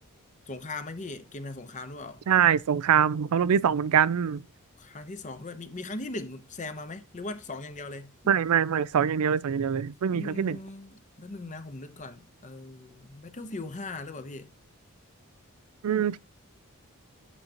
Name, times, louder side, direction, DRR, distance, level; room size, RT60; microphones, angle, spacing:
voice 1, 0.5-2.2 4.8-8.3 10.1-14.5, left 2 dB, 35° left, 0.8 m, -39 dB
voice 2, 2.3-4.4 8.3-10.6 15.8-16.2, right 8 dB, 75° right, 0.4 m, -24 dB
9.1 x 8.1 x 2.9 m
head